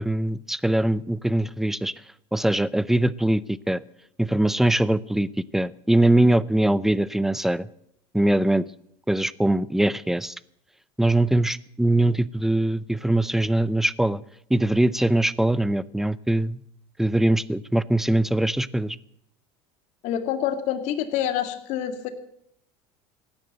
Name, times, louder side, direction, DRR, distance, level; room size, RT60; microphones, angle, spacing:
voice 1, 0.0-1.9 2.3-3.8 4.2-5.3 5.5-7.7 8.1-8.7 9.1-10.3 11.0-14.2 14.5-16.6 17.0-19.0, right 1 dB, 5° right, 20 dB, 0.5 m, -22 dB
voice 2, 20.0-22.1, left 10 dB, 60° left, 9 dB, 2.1 m, -27 dB
17.0 x 10.5 x 7.8 m, 0.73 s
supercardioid pair, 115°, 13 cm